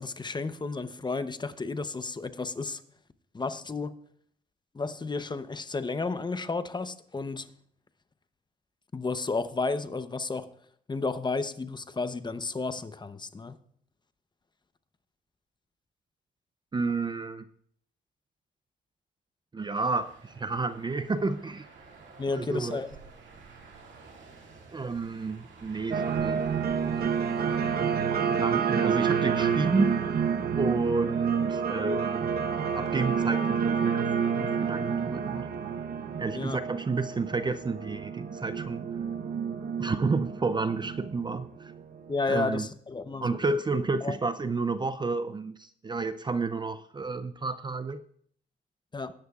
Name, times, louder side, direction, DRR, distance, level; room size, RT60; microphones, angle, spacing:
voice 1, 0.0-2.8 3.3-4.0 4.7-7.5 8.9-10.5 10.9-13.6 22.2-23.0 36.3-36.6 42.1-43.4 44.0-44.2 48.9-49.1, left 3 dB, 20° left, 11 dB, 0.8 m, -32 dB
voice 2, 16.7-17.5 19.5-21.7 22.3-22.8 24.7-27.1 27.4-27.9 28.3-30.0 30.5-32.3 32.7-34.1 34.4-35.5 36.2-38.9 39.8-41.7 42.3-42.7 43.2-48.0, right 3 dB, 25° right, 12 dB, 0.5 m, -30 dB
sound 1, 19.7-29.7, right 4 dB, 70° right, 2.4 m, -50 dB
sound 2, 25.9-42.2, right 7 dB, 50° right, 1.0 m, -29 dB
19.5 x 10.5 x 2.4 m, 0.62 s
cardioid pair, 90°, 20 cm